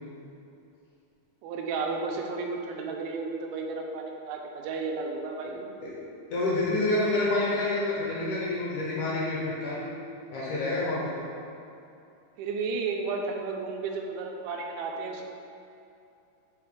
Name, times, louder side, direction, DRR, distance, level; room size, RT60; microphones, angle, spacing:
voice 1, 1.4-5.8 11.2-11.6 12.4-15.2, right 4 dB, 85° right, 1 dB, 2.5 m, -33 dB
voice 2, 5.8-9.9 10.3-11.2, left 2 dB, 70° left, -7 dB, 2.1 m, -28 dB
6.8 x 4.3 x 3.6 m, 2.6 s
omnidirectional pair, 4.4 m